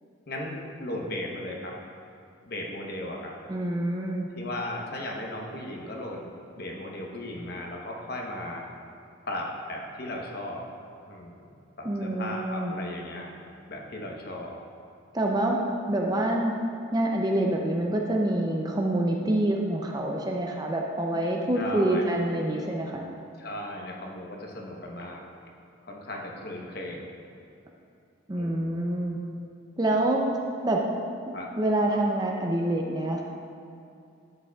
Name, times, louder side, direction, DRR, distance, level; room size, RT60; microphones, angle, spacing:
voice 1, 0.3-1.7 2.4-3.3 4.3-6.3 6.6-8.7 9.3-10.7 11.1-11.3 11.8-13.3 13.7-14.6 21.6-22.0 23.4-25.2 25.9-27.0 28.3-28.8 31.3-31.5, left 1 dB, 50° left, -1 dB, 0.9 m, -36 dB
voice 2, 3.5-4.3 11.8-12.7 15.1-15.6 15.9-16.5 16.9-23.0 28.3-29.2 29.8-30.2 30.6-30.8 31.6-33.2, right 1 dB, 20° right, 0 dB, 0.5 m, -26 dB
10.5 x 7.5 x 2.3 m, 2.6 s
head